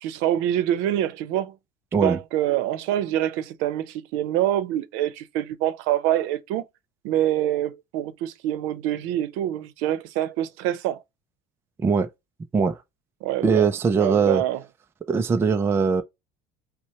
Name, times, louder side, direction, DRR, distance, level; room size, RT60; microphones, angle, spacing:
voice 1, 0.0-1.6 2.0-6.6 7.0-11.0 13.2-13.7 14.0-14.6, right 12 dB, 80° right, 0.7 m, -25 dB
voice 2, 11.8-12.1 12.5-12.8 13.4-14.4 15.1-16.0, right 5 dB, 10° right, 0.3 m, -21 dB
5.6 x 2.1 x 3.0 m
cardioid pair, 170°, 20 cm